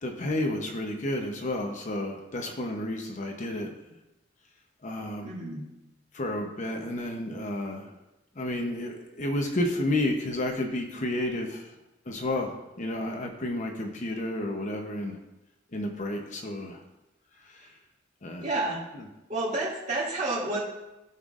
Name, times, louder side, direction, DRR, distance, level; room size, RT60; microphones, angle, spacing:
voice 1, 0.0-3.7 4.8-5.3 6.1-7.9 8.4-11.7 12.1-15.2 15.7-16.8 17.5-17.7 18.2-18.5, left 1 dB, 40° left, 3 dB, 0.8 m, -31 dB
voice 2, 5.2-5.7 17.6-17.7 18.4-18.8 19.3-20.6, right 2 dB, 40° right, -5 dB, 2.3 m, -30 dB
14.5 x 5.8 x 2.5 m, 0.97 s
head